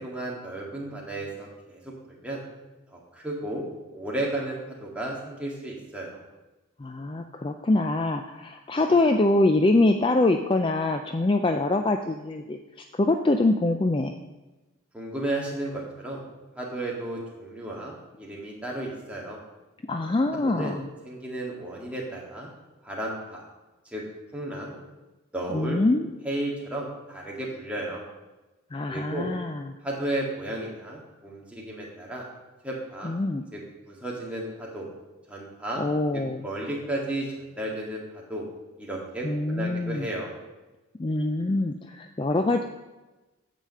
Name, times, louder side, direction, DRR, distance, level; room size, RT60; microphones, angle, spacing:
voice 1, 0.0-2.4 2.9-3.7 3.9-6.2 14.9-16.2 16.6-19.4 20.4-20.7 21.0-22.5 22.8-23.4 23.9-24.0 24.3-24.8 25.3-25.8 26.2-28.0 28.9-29.3 29.8-32.3 32.6-33.1 33.5-33.6 33.9-34.9 35.3-35.8 36.1-38.4 38.8-40.3, right 1 dB, 5° right, -4 dB, 1.9 m, -33 dB
voice 2, 6.8-14.1 19.9-20.9 25.5-26.1 28.7-29.6 33.0-33.4 35.8-36.5 39.2-40.1 41.0-42.6, left 2 dB, 25° left, 5 dB, 0.3 m, -24 dB
9.0 x 5.1 x 7.5 m, 1.1 s
head